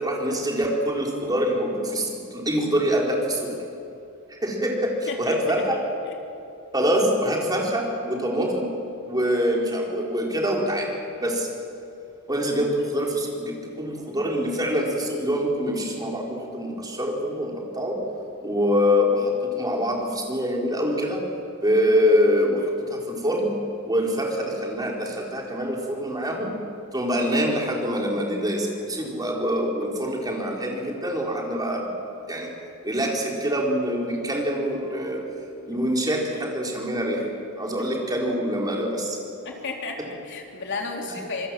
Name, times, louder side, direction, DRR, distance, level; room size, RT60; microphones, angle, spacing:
voice 1, 0.0-3.5 4.3-5.8 6.7-8.7 9.1-10.9 11.2-11.5 12.3-18.0 18.4-21.3 21.6-23.5 23.9-26.6 26.9-31.9 32.3-32.5 32.8-35.3 35.7-37.3 37.6-39.2 41.1-41.2, equal, 20° right, -1 dB, 4.1 m, -25 dB
voice 2, 39.5-41.5, left 3 dB, 60° left, 1 dB, 3.6 m, -33 dB
26.0 x 21.5 x 7.7 m, 2.6 s
head